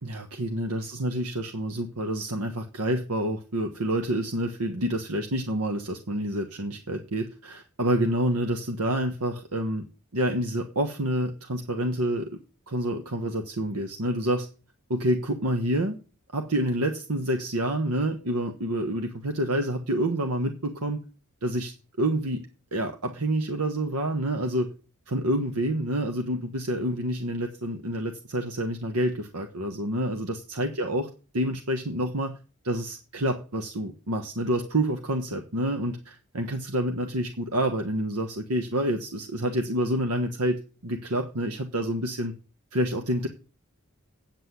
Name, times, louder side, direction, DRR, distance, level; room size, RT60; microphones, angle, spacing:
voice 1, 0.0-9.9 10.1-12.3 12.7-14.5 14.9-16.0 16.3-21.0 21.4-22.5 22.7-24.7 25.1-31.1 31.3-32.4 32.6-40.6 40.8-42.3 42.7-43.3, right 1 dB, 85° right, 4 dB, 1.3 m, -28 dB
8.9 x 7.9 x 8.3 m, 0.35 s
head